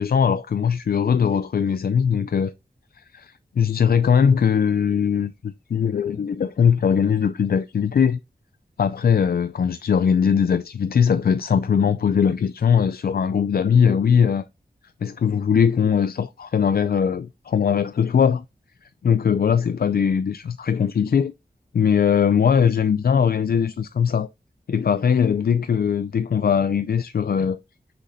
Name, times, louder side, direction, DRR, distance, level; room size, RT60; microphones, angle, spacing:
voice 1, 0.0-2.5 3.0-8.2 8.8-14.4 15.0-18.4 19.0-21.3 21.7-24.3 24.7-27.6, left 7 dB, 65° left, 0.4 m, -20 dB
6.3 x 5.8 x 2.6 m
wide cardioid pair, 60°, 17 cm